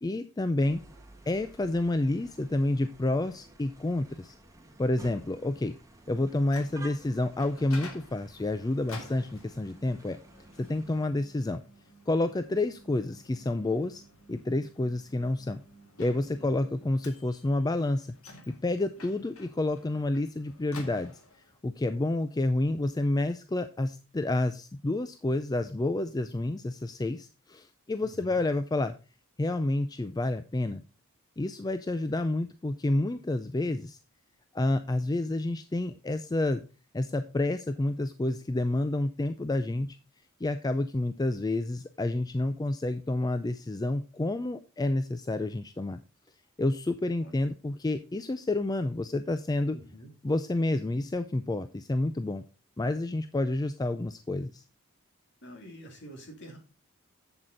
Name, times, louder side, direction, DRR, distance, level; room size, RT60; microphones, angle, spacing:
voice 1, 0.0-0.8 1.3-4.3 4.8-5.7 6.1-10.2 10.6-11.6 12.1-14.0 14.3-15.6 16.0-18.2 18.5-21.2 21.6-28.9 29.4-30.8 31.4-34.0 34.5-36.6 36.9-40.0 40.4-46.0 46.6-49.8 50.2-52.4 52.8-54.6, left 2 dB, 15° left, 10 dB, 0.3 m, -29 dB
sound 1, 0.6-11.1, right 1 dB, 15° right, 1.4 m, -53 dB
Microwave oven, 6.2-21.6, left 2 dB, 70° left, 2.0 m, -51 dB
voice 2, 16.3-16.8 28.0-28.5 47.2-47.4 49.7-50.1 55.4-56.6, equal, 50° left, 2 dB, 2.8 m, -47 dB
7.9 x 7.5 x 3.9 m, 0.32 s
head